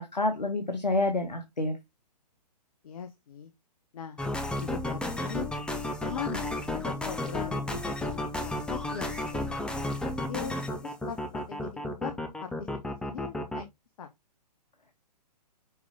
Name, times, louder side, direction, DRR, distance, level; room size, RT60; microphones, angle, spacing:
voice 1, 0.0-1.8, left 2 dB, 90° left, 1.3 m, -28 dB
voice 2, 2.8-3.5 3.9-4.2 4.6-5.5 6.0-10.5 10.8-12.2 12.4-13.7 14.0-14.1, left 7 dB, 60° left, 1.0 m, -40 dB
sound 1, 4.2-13.6, left 1 dB, 5° left, 0.9 m, -33 dB
6.1 x 4.8 x 3.7 m
figure-of-eight pair, 120°, 21 cm